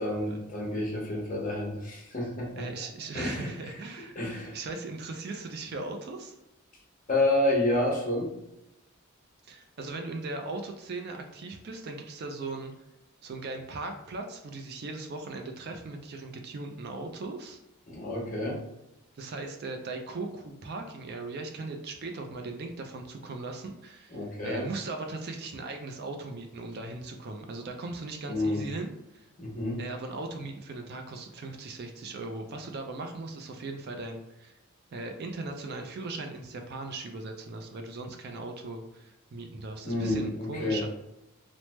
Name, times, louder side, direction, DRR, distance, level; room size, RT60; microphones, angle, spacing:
voice 1, 0.0-2.7 3.1-3.7 4.1-4.6 7.1-8.3 17.9-18.6 24.1-24.7 28.3-28.6 29.4-29.8 39.8-40.8, left 1 dB, 40° left, -2 dB, 0.8 m, -29 dB
voice 2, 2.6-4.1 4.5-6.4 9.4-12.7 13.2-17.6 19.2-29.3 29.8-34.5 34.9-40.9, right 3 dB, 50° right, 4 dB, 0.4 m, -38 dB
3.2 x 2.0 x 3.0 m, 0.88 s
head